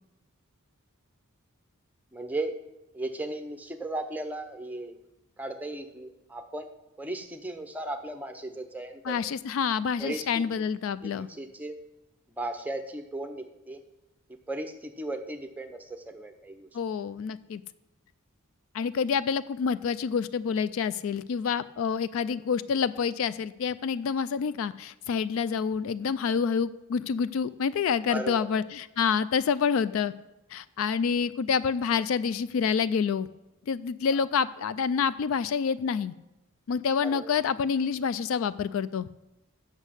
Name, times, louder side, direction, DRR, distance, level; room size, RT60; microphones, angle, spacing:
voice 1, 2.1-2.6 2.9-5.0 5.4-6.7 7.0-9.2 10.0-10.6 11.0-11.8 12.4-13.8 14.3-16.7 22.3-22.4 28.1-28.5 37.0-37.3, right 2 dB, 5° right, 6 dB, 0.7 m, -36 dB
voice 2, 9.1-11.3 16.7-17.6 18.7-30.1 30.5-33.3 33.7-36.1 36.7-39.1, left 6 dB, 65° left, 16 dB, 0.3 m, -27 dB
8.1 x 6.5 x 6.4 m, 1.0 s
head